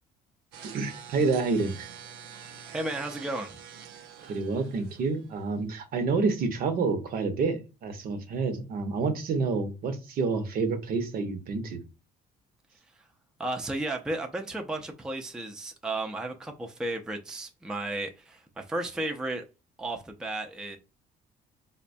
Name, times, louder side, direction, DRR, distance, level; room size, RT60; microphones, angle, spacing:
sound 1, 0.5-5.5, right 8 dB, 90° right, 0.6 m, -46 dB
voice 1, 0.6-1.9 4.2-11.8, right 4 dB, 60° right, 0.8 m, -28 dB
voice 2, 2.7-3.6 13.4-19.4 19.8-20.8, right 2 dB, 5° right, 0.4 m, -33 dB
4.0 x 2.2 x 2.5 m
cardioid pair, 110°, 17 cm